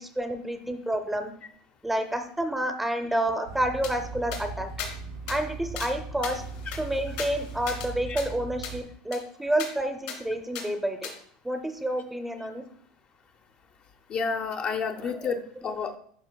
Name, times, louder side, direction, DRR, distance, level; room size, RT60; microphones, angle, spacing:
voice 1, 0.0-1.3 1.8-4.7 5.3-6.4 6.8-11.1 11.4-12.6 14.9-15.8, right 1 dB, 5° right, 7 dB, 0.6 m, -29 dB
sound 1, 3.4-8.8, right 3 dB, 90° right, 2.5 m, -39 dB
sound 2, 3.8-3.9 4.3-4.4 4.8-4.9 5.3-5.4 5.8-5.9 6.2-7.9 8.2-8.3 8.6-8.8 9.1-9.2 9.6-9.7 10.1-10.2 10.5-10.7 11.0-11.1, left 7 dB, 75° left, 2.4 m, -37 dB
voice 2, 14.1-16.0, left 5 dB, 40° left, 5 dB, 0.6 m, -30 dB
11.0 x 4.3 x 2.3 m, 0.63 s
supercardioid pair, 105°, 3 cm